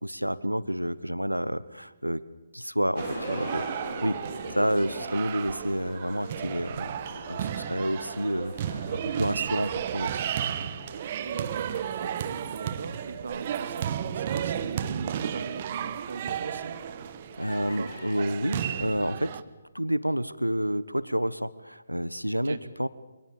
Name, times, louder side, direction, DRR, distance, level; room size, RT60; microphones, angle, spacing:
voice 1, 0.0-2.2 2.5-4.2 4.5-7.0 7.3-10.1 17.4-19.4 19.7-22.9, equal, 90° right, 16 dB, 1.1 m, -29 dB
sound 1, 2.9-18.1, left 2 dB, 60° left, 7.1 m, -44 dB
sound 2, 3.0-19.4, right 9 dB, 35° right, 1.4 m, -33 dB
voice 2, 4.2-4.5 11.2-16.8 17.8-17.9 22.4-22.6, right 4 dB, 55° right, 9 dB, 2.5 m, -40 dB
29.5 x 24.5 x 7.2 m, 1.2 s
figure-of-eight pair, 140°, 0 cm